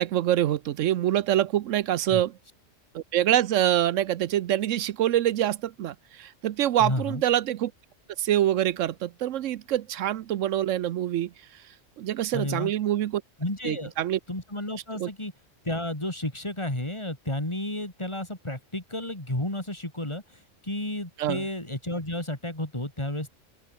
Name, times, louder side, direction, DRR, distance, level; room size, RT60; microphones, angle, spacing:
voice 1, 0.0-2.4 2.9-7.7 8.2-11.6 12.0-13.2 13.6-14.2 14.9-15.1 21.2-21.4, right 12 dB, 80° right, 1.0 m, -25 dB
voice 2, 6.8-7.2 12.3-12.7 13.4-13.9 14.3-15.3 15.6-23.4, left 1 dB, 20° left, 3.7 m, -32 dB
open air
omnidirectional pair, 1.3 m